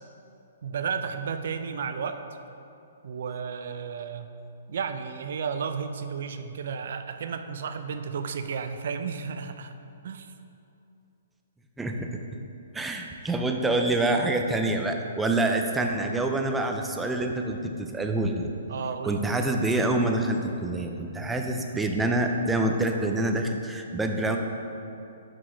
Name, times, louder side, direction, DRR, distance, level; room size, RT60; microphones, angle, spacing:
voice 1, 0.6-2.2 3.0-4.3 4.7-9.7 10.0-10.3 18.7-19.2, right 6 dB, 65° right, 8 dB, 0.4 m, -33 dB
voice 2, 11.8-12.2 12.7-18.5 19.0-24.4, right 2 dB, 10° right, 3 dB, 0.5 m, -26 dB
6.2 x 4.7 x 4.4 m, 2.7 s
hypercardioid pair, 145°, 0 cm